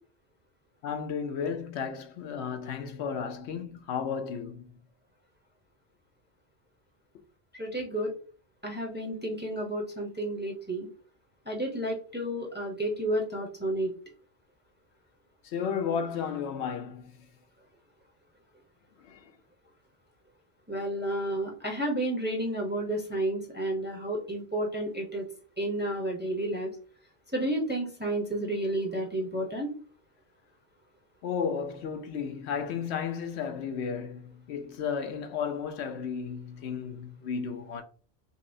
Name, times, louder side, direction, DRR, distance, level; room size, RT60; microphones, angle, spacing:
voice 1, 0.8-4.7 15.4-17.1 19.1-19.2 31.2-37.8, left 6 dB, 75° left, 0.8 m, -33 dB
voice 2, 7.6-8.1 8.6-10.9 11.5-13.9 20.7-25.2 25.6-26.7 27.3-29.7, right 1 dB, 10° right, 0.6 m, -31 dB
5.3 x 2.0 x 2.6 m
omnidirectional pair, 1.1 m